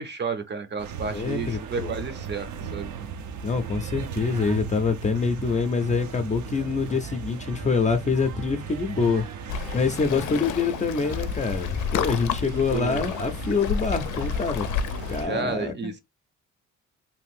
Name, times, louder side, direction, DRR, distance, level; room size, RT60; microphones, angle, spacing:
voice 1, 0.0-2.9 12.7-13.1 15.2-16.0, right 5 dB, 35° right, 0.6 m, -31 dB
sound 1, 0.8-15.3, right 6 dB, 75° right, 0.6 m, -37 dB
voice 2, 1.1-2.0 3.4-9.2 9.7-14.7 15.1-15.7, left 4 dB, 25° left, 0.4 m, -25 dB
Waves surf, 9.5-15.2, left 8 dB, 80° left, 0.5 m, -30 dB
2.7 x 2.4 x 3.4 m
cardioid pair, 90°, 30 cm